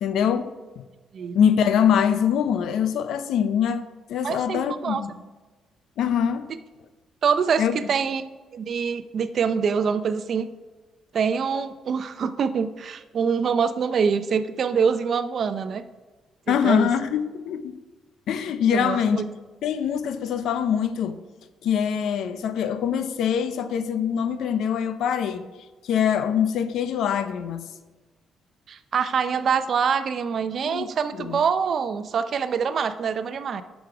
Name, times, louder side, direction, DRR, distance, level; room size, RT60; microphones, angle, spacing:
voice 1, 0.0-0.5 1.3-5.1 6.0-6.5 7.6-7.8 16.5-17.8 18.3-19.3 19.6-21.2 21.6-25.5 25.8-27.7 30.6-30.9 31.2-31.4, left 8 dB, 75° left, 0.6 m, -23 dB
voice 2, 4.2-5.0 7.2-8.2 8.5-10.5 11.1-15.8 16.5-16.9 18.7-19.2 28.7-33.6, right 6 dB, 55° right, 0.6 m, -25 dB
10.0 x 6.2 x 4.8 m
cardioid pair, 90°, 0 cm